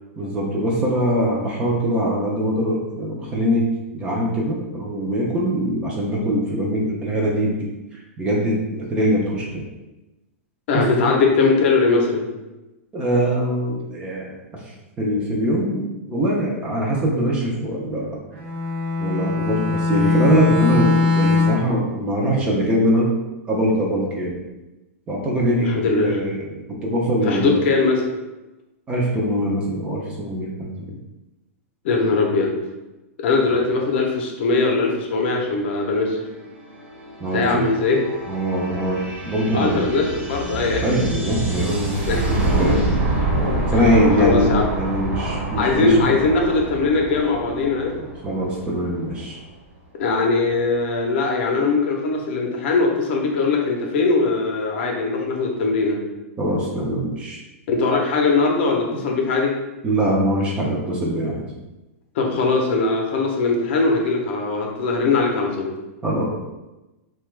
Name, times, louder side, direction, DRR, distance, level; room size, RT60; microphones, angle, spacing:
voice 1, 0.2-3.7 3.9-9.6 10.7-10.8 12.9-15.8 16.1-18.2 19.0-23.1 23.5-24.4 25.1-26.5 26.8-27.6 28.9-30.8 37.2-37.6 38.3-39.9 40.8-43.0 43.7-46.0 48.2-49.4 56.4-57.4 59.8-61.4 66.0-66.3, equal, 15° right, -3 dB, 0.4 m, -22 dB
voice 2, 10.7-12.2 25.6-26.2 27.2-28.2 31.8-32.5 33.2-36.3 37.3-38.0 39.5-40.8 42.1-42.3 43.7-43.8 44.2-44.6 45.5-48.0 50.0-56.0 57.7-59.5 62.2-65.7, left 3 dB, 50° left, 0 dB, 0.6 m, -20 dB
Bowed string instrument, 18.3-21.7, left 4 dB, 50° right, 0.8 m, -20 dB
sound 1, 36.0-49.5, right 2 dB, 70° right, 1.1 m, -27 dB
2.9 x 2.2 x 3.2 m, 1.0 s
supercardioid pair, 160°, 8 cm